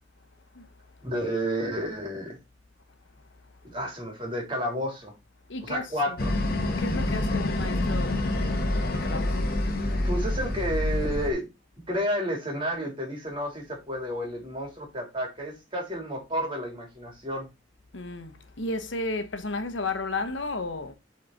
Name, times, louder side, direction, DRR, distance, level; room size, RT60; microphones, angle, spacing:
voice 1, 1.0-2.4 3.6-5.1 5.6-6.4 10.0-11.5 11.9-17.5, equal, 25° right, 3.2 m, -31 dB
voice 2, 5.5-6.2 6.8-8.2 8.9-9.4 17.9-20.9, left 3 dB, 75° left, 1.1 m, -33 dB
sound 1, 6.2-11.3, left 1 dB, 50° left, 1.2 m, -27 dB
7.7 x 4.3 x 4.0 m
head